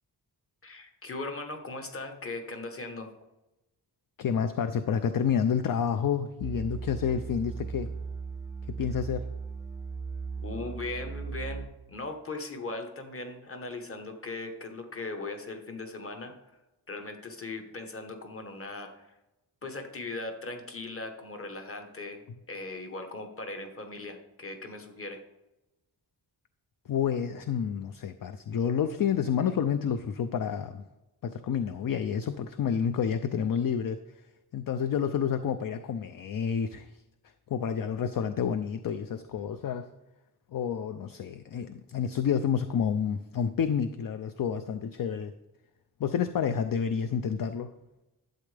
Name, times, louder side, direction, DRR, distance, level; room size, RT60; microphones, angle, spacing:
voice 1, 0.6-3.1 10.4-16.4 16.9-19.0 19.6-25.2, left 2 dB, 30° left, 5 dB, 1.1 m, -39 dB
voice 2, 4.2-7.9 8.7-9.3 26.9-30.8 31.2-34.0 34.5-36.9 37.5-39.9 40.5-45.3 46.0-47.7, left 7 dB, 55° left, 10 dB, 0.5 m, -29 dB
sound 1, 6.4-11.6, right 5 dB, 5° right, 0.7 m, -37 dB
12.0 x 8.0 x 3.3 m, 0.98 s
wide cardioid pair, 160°, 41 cm